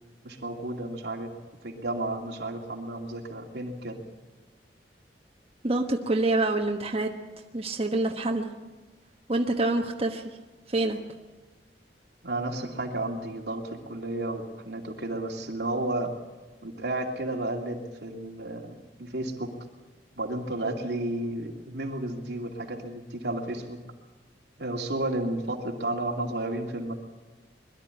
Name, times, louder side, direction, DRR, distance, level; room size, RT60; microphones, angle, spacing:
voice 1, 0.2-1.3 1.6-4.0 12.2-16.1 16.6-19.5 20.2-23.8 24.6-26.9, right 1 dB, 70° right, 1 dB, 2.7 m, -32 dB
voice 2, 5.6-7.2 7.5-8.5 9.3-10.4 10.7-11.0, right 2 dB, 35° right, 2 dB, 1.2 m, -26 dB
22.5 x 12.5 x 9.8 m, 1.3 s
head